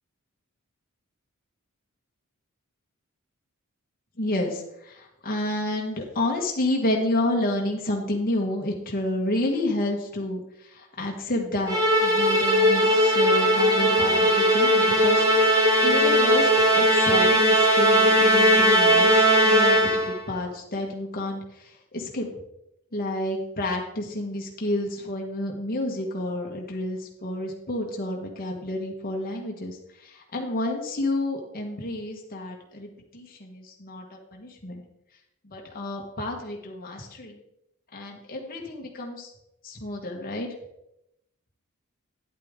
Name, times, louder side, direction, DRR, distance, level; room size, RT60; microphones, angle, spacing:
voice 1, 4.2-10.4 10.7-15.3 15.8-16.5 16.8-21.4 21.9-22.3 22.9-34.0 34.3-34.8 35.4-37.4 37.9-39.3 39.6-40.5, left 1 dB, 45° left, 0 dB, 1.4 m, -30 dB
Musical instrument, 11.7-20.2, equal, 20° right, 1.5 m, -19 dB
10.0 x 8.5 x 3.7 m, 0.84 s
head